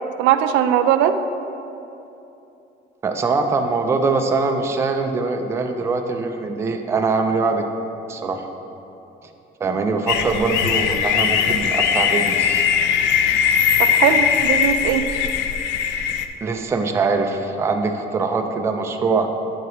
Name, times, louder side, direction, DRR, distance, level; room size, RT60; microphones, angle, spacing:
voice 1, 0.2-1.2 13.8-15.0, right 10 dB, 85° right, 9 dB, 0.4 m, -19 dB
voice 2, 3.0-7.7 8.1-8.5 9.6-12.7 16.4-19.3, right 4 dB, 15° right, 4 dB, 0.3 m, -22 dB
sound 1, 10.1-16.3, left 8 dB, 75° left, 0.5 m, -20 dB
8.8 x 7.8 x 3.0 m, 2.9 s
cardioid pair, 175°, 18 cm